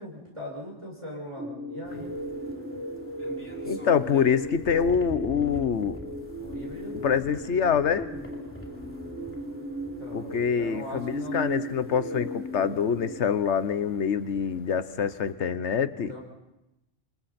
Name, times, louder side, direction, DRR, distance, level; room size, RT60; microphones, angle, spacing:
voice 1, 0.0-2.1 6.4-7.0 10.0-11.4 16.1-16.2, left 1 dB, 25° right, -3 dB, 6.3 m, -40 dB
sound 1, 1.4-13.2, equal, 60° right, 1.8 m, -36 dB
sound 2, 1.8-15.3, equal, 10° left, 2.9 m, -47 dB
voice 2, 3.6-6.0 7.0-8.1 10.1-16.1, left 7 dB, 65° left, 13 dB, 1.3 m, -25 dB
27.5 x 27.5 x 4.3 m, 0.91 s
omnidirectional pair, 1.3 m